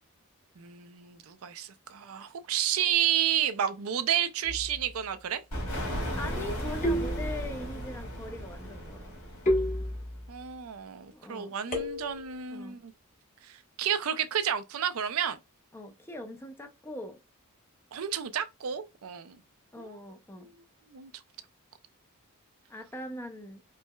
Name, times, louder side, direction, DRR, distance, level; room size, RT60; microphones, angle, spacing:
voice 1, 0.6-5.4 10.3-12.9 13.4-15.4 17.9-19.4 19.8-19.9 20.4-20.5 20.9-21.1, right 9 dB, 70° right, 0.4 m, -31 dB
sound 1, 4.4-5.0 6.8-7.8 9.5-10.4 11.7-12.4, equal, 35° left, 1.0 m, -31 dB
sound 2, 5.5-10.2, equal, 80° left, 2.0 m, -36 dB
voice 2, 6.2-9.2 11.1-11.9 12.5-12.8 15.7-17.2 19.7-20.5 22.7-23.6, left 1 dB, 10° left, 0.4 m, -41 dB
4.5 x 2.1 x 2.2 m
head